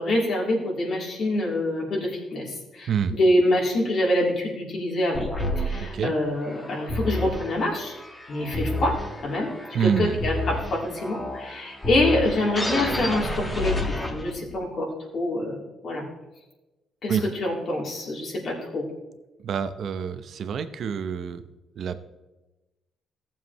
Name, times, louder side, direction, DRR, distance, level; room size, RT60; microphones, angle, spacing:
voice 1, 0.0-5.3 5.5-7.9 8.3-16.1 17.0-18.9, left 1 dB, 60° left, -3 dB, 3.2 m, -26 dB
sound 1, 5.1-14.6, left 1 dB, 15° left, 1.6 m, -30 dB
voice 2, 5.8-6.1 9.7-10.2 17.1-17.2 19.4-21.4 21.8-22.0, right 7 dB, 65° right, 11 dB, 0.7 m, -27 dB
15.0 x 7.4 x 3.1 m, 1.1 s
cardioid pair, 90°, 0 cm